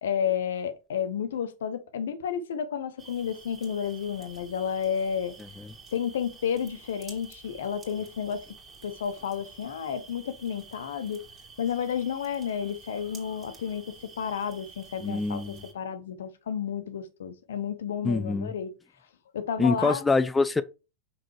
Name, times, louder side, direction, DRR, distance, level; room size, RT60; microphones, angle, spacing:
voice 1, 0.0-5.3 5.9-8.4 8.8-11.2 11.6-18.7 19.3-20.0, left 8 dB, 60° left, 0.9 m, -31 dB
sound 1, 3.0-15.7, right 4 dB, 20° right, 1.9 m, -50 dB
voice 2, 15.0-15.6 18.0-18.5 19.6-20.6, left 3 dB, 10° left, 0.3 m, -25 dB
6.0 x 5.6 x 3.2 m
figure-of-eight pair, 90°, 0 cm